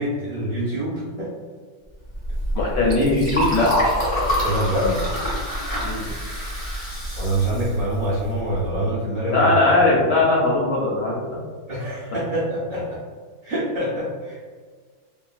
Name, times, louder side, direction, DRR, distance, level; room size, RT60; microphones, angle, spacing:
voice 1, 0.0-1.3 4.4-5.0 7.1-9.5 11.7-13.0 13.4-14.4, right 1 dB, 50° right, -11 dB, 0.6 m, -25 dB
Liquid, 2.1-8.8, equal, 30° left, 0.6 m, -26 dB
voice 2, 2.5-3.7 5.8-6.1 9.3-11.4, left 2 dB, 75° left, -4 dB, 1.1 m, -19 dB
3.3 x 2.0 x 2.3 m, 1.5 s
omnidirectional pair, 2.1 m